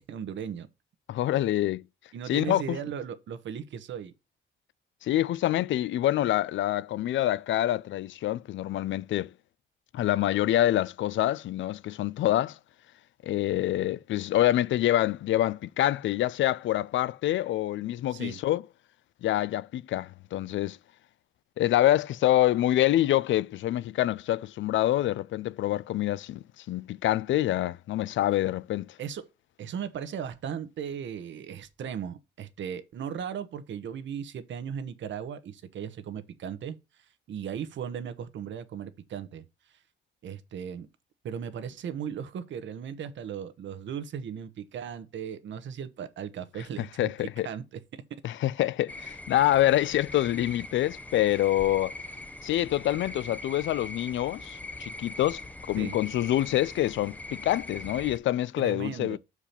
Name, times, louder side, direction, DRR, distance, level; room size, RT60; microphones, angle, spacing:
voice 1, 0.1-0.7 2.1-4.1 18.1-18.4 29.0-29.2 29.6-36.8 37.3-39.8 40.2-40.9 41.2-47.1 47.4-48.0 55.8-56.0 58.6-59.2, right 8 dB, 75° right, 1.1 m, -37 dB
voice 2, 1.1-1.8 2.3-2.8 5.0-9.3 9.9-12.6 13.2-18.6 19.2-20.8 21.6-28.9 46.8-47.5 48.2-51.9 52.4-55.4 55.7-59.2, left 13 dB, 80° left, 0.4 m, -26 dB
sound 1, 48.9-58.2, left 2 dB, 10° left, 0.6 m, -41 dB
6.8 x 4.8 x 5.7 m
wide cardioid pair, 170°, 19 cm